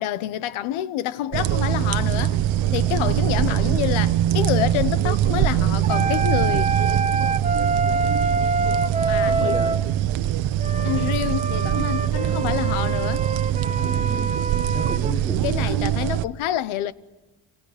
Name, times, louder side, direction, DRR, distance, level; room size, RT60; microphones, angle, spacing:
voice 1, 0.0-2.4 2.7-6.7 8.6-8.8 9.1-9.6 10.8-13.2 15.4-16.9, left 12 dB, 90° left, 1.1 m, -27 dB
sound 1, 1.3-16.2, right 12 dB, 70° right, 1.0 m, -23 dB
voice 2, 2.9-3.3 9.2-9.8 13.7-14.4 14.7-15.8, equal, 5° left, 1.3 m, -35 dB
sound 2, 5.8-9.8 10.6-15.1, right 3 dB, 15° right, 0.7 m, -26 dB
29.0 x 27.5 x 5.1 m
cardioid pair, 145°, 47 cm